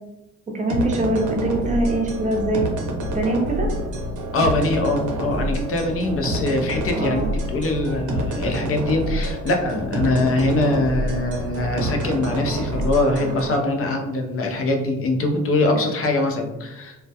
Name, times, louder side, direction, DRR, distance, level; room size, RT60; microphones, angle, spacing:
voice 1, 0.5-2.7 3.1-3.7 6.5-6.6 6.9-7.3, right 2 dB, 25° right, 0 dB, 0.6 m, -23 dB
sound 1, 0.7-13.6, right 1 dB, 75° right, 0.6 m, -27 dB
voice 2, 4.3-17.0, left 2 dB, 50° left, 3 dB, 0.5 m, -23 dB
2.2 x 2.1 x 2.7 m, 0.99 s
cardioid pair, 90°, 30 cm